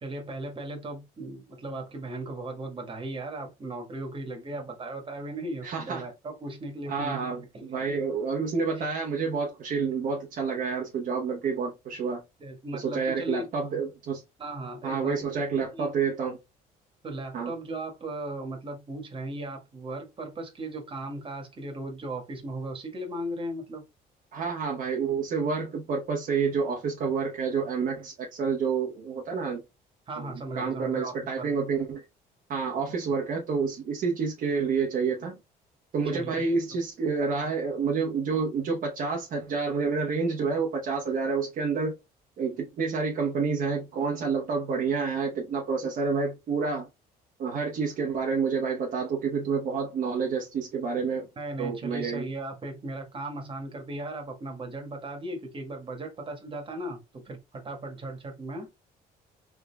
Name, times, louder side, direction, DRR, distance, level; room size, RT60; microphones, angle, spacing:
voice 1, 0.0-7.2 7.5-7.8 8.8-8.9 12.4-13.5 14.4-15.3 15.7-15.9 17.0-23.8 30.1-31.5 36.0-36.6 51.4-58.7, right 1 dB, 30° right, 1.4 m, -37 dB
voice 2, 5.6-6.1 6.9-12.2 12.7-14.2 14.8-16.4 17.3-17.5 24.3-29.6 30.2-32.0 32.5-35.4 35.9-41.9 42.4-46.9 47.4-51.3 51.6-52.2, right 5 dB, 55° right, 0.9 m, -29 dB
3.6 x 3.5 x 2.2 m
cardioid pair, 110°, 17 cm